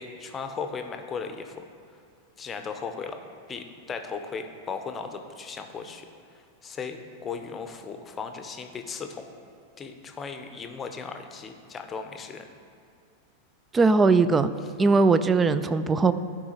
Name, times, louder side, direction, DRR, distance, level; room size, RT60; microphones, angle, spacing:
voice 1, 0.0-1.6 2.4-3.2 3.5-6.1 6.3-9.3 9.8-12.5, left 5 dB, 20° left, 6 dB, 0.7 m, -37 dB
voice 2, 13.7-14.5 14.8-16.1, right 4 dB, 15° right, 12 dB, 0.3 m, -20 dB
14.0 x 4.7 x 3.0 m, 2.3 s
figure-of-eight pair, 90°, 0 cm